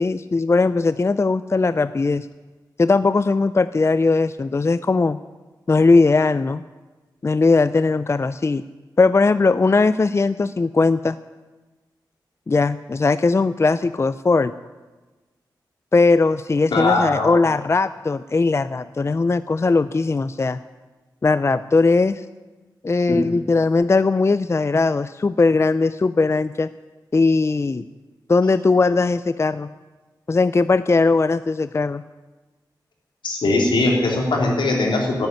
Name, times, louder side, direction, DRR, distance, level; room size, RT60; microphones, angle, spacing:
voice 1, 0.0-2.3 2.8-5.2 5.7-6.6 7.2-8.6 9.0-11.2 12.5-14.5 15.9-20.6 21.2-22.2 22.8-26.7 27.1-27.8 28.3-29.7 30.3-32.0, left 3 dB, 35° left, 14 dB, 0.4 m, -19 dB
voice 2, 16.7-17.3 33.2-35.3, left 2 dB, 80° left, -1 dB, 3.3 m, -20 dB
12.0 x 9.1 x 9.5 m, 1.2 s
cardioid pair, 50°, 8 cm